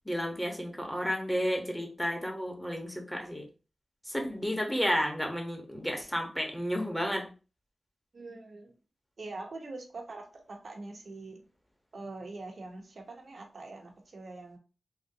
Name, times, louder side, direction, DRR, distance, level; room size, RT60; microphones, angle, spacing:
voice 1, 0.0-3.5 4.0-7.3, equal, 10° left, 1.0 m, -32 dB
voice 2, 8.1-8.7 9.2-11.4 11.9-14.6, right 3 dB, 65° right, 0.9 m, -43 dB
3.6 x 2.1 x 2.7 m
cardioid pair, 45°, 0 cm